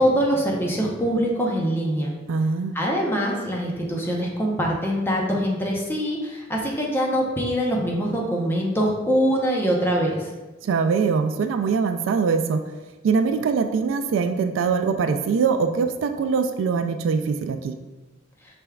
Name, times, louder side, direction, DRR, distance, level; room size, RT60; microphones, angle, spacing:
voice 1, 0.0-2.1 2.7-10.3, equal, 10° left, -2 dB, 0.6 m, -23 dB
voice 2, 2.3-2.7 10.6-12.6 13.0-17.8, right 5 dB, 80° right, 8 dB, 0.3 m, -22 dB
5.9 x 3.4 x 2.3 m, 1.2 s
head